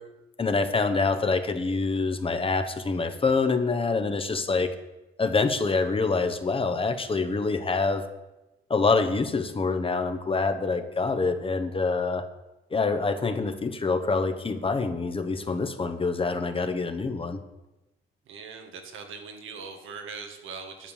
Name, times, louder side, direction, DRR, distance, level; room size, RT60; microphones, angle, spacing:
voice 1, 0.4-4.7 5.2-8.0 8.7-12.2 12.7-17.4, left 4 dB, 25° left, 8 dB, 1.0 m, -26 dB
voice 2, 18.3-20.9, right 5 dB, 85° right, 4 dB, 1.8 m, -41 dB
10.0 x 6.6 x 7.2 m, 1.0 s
cardioid pair, 90°, 20 cm